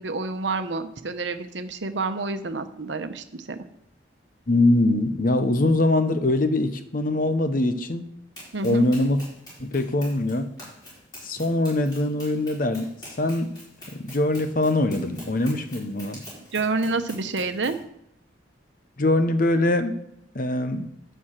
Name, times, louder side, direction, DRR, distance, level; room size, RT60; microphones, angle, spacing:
voice 1, 0.0-3.6 8.5-8.9 16.5-17.8, right 3 dB, 75° right, 9 dB, 0.9 m, -28 dB
voice 2, 4.5-8.1 8.6-9.2 9.6-10.5 11.2-12.9 13.2-13.5 13.9-16.2 19.0-20.0 20.3-20.9, left 2 dB, 45° left, 9 dB, 0.8 m, -23 dB
Run, 8.4-17.8, equal, 20° left, 4.9 m, -44 dB
11.5 x 4.6 x 7.5 m, 0.79 s
head